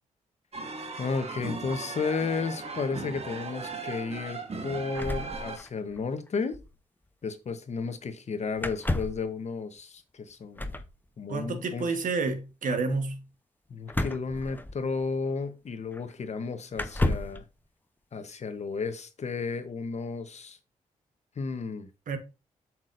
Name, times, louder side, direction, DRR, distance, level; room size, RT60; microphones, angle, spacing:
sound 1, 0.5-5.6, right 4 dB, 45° right, 1.4 m, -38 dB
voice 1, 1.0-6.6 7.2-10.7 11.2-11.9 13.7-17.4 18.1-20.6 21.4-21.9, left 4 dB, 50° left, 1.1 m, -33 dB
sound 2, 4.9-6.0 6.3-6.4 6.5-6.7 8.6-9.3 10.6-10.9 13.9-15.1 15.9-16.0 16.7-17.4, left 1 dB, 15° left, 0.7 m, -31 dB
voice 2, 11.3-13.2 22.1-22.2, right 4 dB, 65° right, 1.3 m, -29 dB
7.5 x 6.0 x 2.6 m
supercardioid pair, 55°, 14 cm